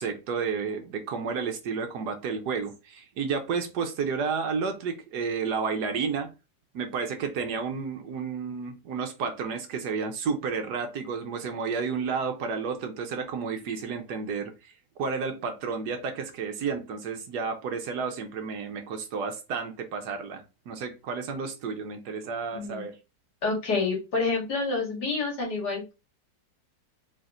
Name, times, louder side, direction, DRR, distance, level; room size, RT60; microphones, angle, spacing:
voice 1, 0.0-6.3 6.7-14.7 15.0-22.9, right 5 dB, 70° right, 1.3 m, -31 dB
voice 2, 22.5-22.9 23.4-25.9, left 4 dB, 65° left, 2.3 m, -28 dB
4.5 x 4.3 x 2.5 m
omnidirectional pair, 1.9 m